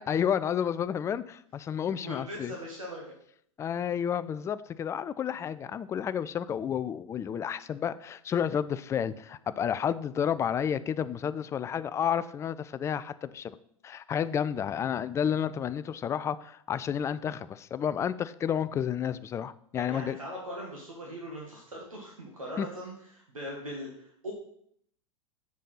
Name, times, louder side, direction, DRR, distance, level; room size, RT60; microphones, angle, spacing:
voice 1, 0.1-2.5 3.6-13.5 13.8-20.2 22.6-22.7, left 8 dB, 15° left, 15 dB, 0.3 m, -31 dB
voice 2, 2.0-3.0 19.8-24.3, equal, 85° right, -2 dB, 1.8 m, -40 dB
6.8 x 5.1 x 5.7 m, 0.68 s
figure-of-eight pair, 95°, 17 cm